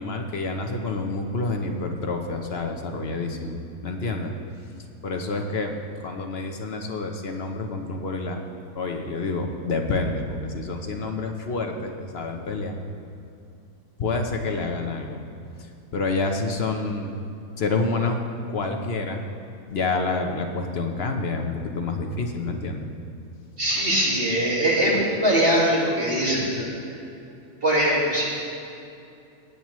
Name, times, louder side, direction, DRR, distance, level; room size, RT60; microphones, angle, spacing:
voice 1, 0.0-4.3 5.0-5.7 6.0-8.4 8.7-12.8 14.0-15.2 15.9-17.2 17.6-18.2 18.5-19.3 19.7-22.9, left 3 dB, 50° left, 4 dB, 0.9 m, -28 dB
voice 2, 23.6-27.0 27.6-28.3, right 1 dB, 40° right, -5 dB, 2.2 m, -22 dB
16.5 x 9.0 x 3.1 m, 2.6 s
omnidirectional pair, 1.6 m